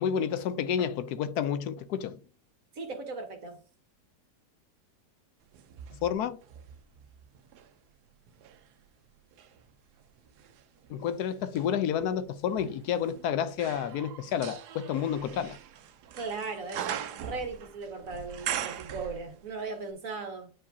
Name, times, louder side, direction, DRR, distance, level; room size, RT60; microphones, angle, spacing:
voice 1, 0.0-2.2 6.0-6.4 10.9-15.6, left 8 dB, 75° left, 1.2 m, -30 dB
voice 2, 2.7-3.6 16.1-20.5, right 4 dB, 55° right, 1.5 m, -37 dB
sound 1, 5.5-7.7 8.3-19.6 19.9-20.0, right 9 dB, 75° right, 1.2 m, -41 dB
9.1 x 4.8 x 2.7 m
omnidirectional pair, 1.8 m